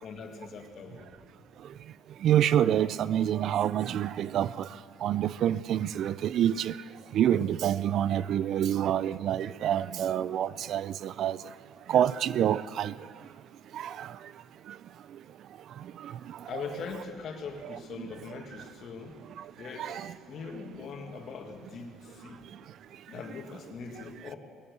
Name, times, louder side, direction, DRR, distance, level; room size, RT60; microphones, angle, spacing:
voice 1, 0.0-1.1 16.5-19.2 19.6-22.4 23.1-24.4, left 5 dB, 55° left, 1.8 m, -41 dB
voice 2, 2.2-4.5 5.0-6.7 7.1-11.4 11.9-12.9 19.8-19.9, right 10 dB, 60° right, 0.3 m, -26 dB
19.5 x 8.0 x 7.9 m
cardioid pair, 95°, 0 cm